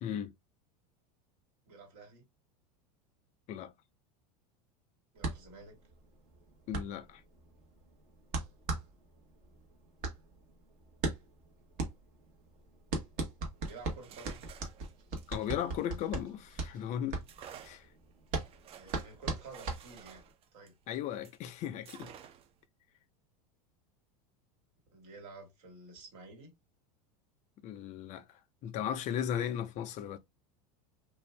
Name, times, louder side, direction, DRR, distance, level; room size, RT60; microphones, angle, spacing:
voice 1, 0.0-0.3 3.5-3.7 6.7-7.2 15.3-17.2 17.6-17.9 20.9-22.1 27.6-28.2 28.6-30.2, left 9 dB, 40° left, 0.5 m, -36 dB
voice 2, 1.7-2.3 5.1-5.8 13.6-14.4 18.7-20.2 20.5-20.8 24.9-26.5, right 3 dB, 70° right, 1.7 m, -51 dB
sound 1, 5.2-20.3, right 3 dB, 50° right, 1.1 m, -38 dB
sound 2, 13.6-16.6 17.2-21.4 21.8-22.6, right 9 dB, 30° right, 0.4 m, -54 dB
2.5 x 2.2 x 3.2 m
supercardioid pair, 125°, 18 cm